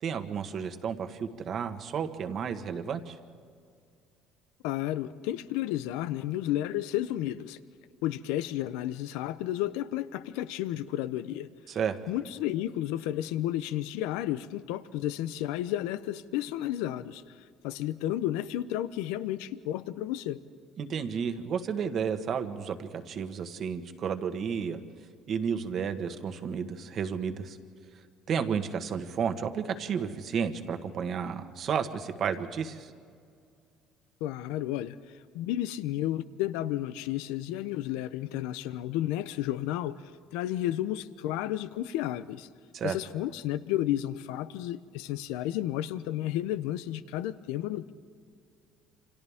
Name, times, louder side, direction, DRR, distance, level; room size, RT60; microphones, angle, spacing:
voice 1, 0.0-3.2 11.7-12.0 20.8-24.8 25.3-27.6 28.3-32.9 42.7-43.0, right 7 dB, 45° right, 7 dB, 1.5 m, -32 dB
voice 2, 4.6-7.6 8.0-11.5 12.1-17.2 17.6-20.4 34.2-35.0 35.3-40.0 40.3-42.5 42.8-47.9, left 13 dB, 90° left, 14 dB, 0.7 m, -32 dB
28.5 x 26.0 x 3.6 m, 2.2 s
cardioid pair, 115°, 0 cm